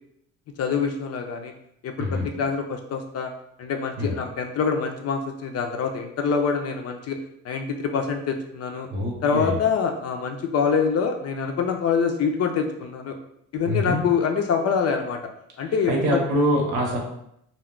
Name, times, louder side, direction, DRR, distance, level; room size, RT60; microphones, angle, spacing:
voice 1, 0.6-1.5 1.8-3.3 3.6-7.2 7.4-8.9 9.2-13.2 13.5-15.2 15.6-16.2, left 6 dB, 55° left, 4 dB, 0.5 m, -25 dB
voice 2, 8.9-9.5 13.7-14.0 15.9-17.0, equal, 85° right, 0 dB, 0.8 m, -24 dB
2.3 x 2.0 x 3.6 m, 0.75 s
cardioid pair, 90°, 30 cm